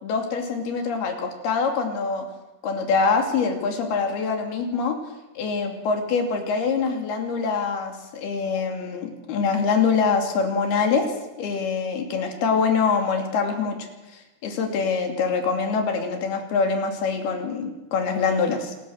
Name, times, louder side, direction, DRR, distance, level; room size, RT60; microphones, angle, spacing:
voice 1, 0.0-2.3 2.6-5.0 5.3-11.1 11.4-13.8 14.1-18.7, left 5 dB, 70° left, 3 dB, 4.7 m, -24 dB
27.0 x 21.0 x 6.5 m, 1.1 s
omnidirectional pair, 4.7 m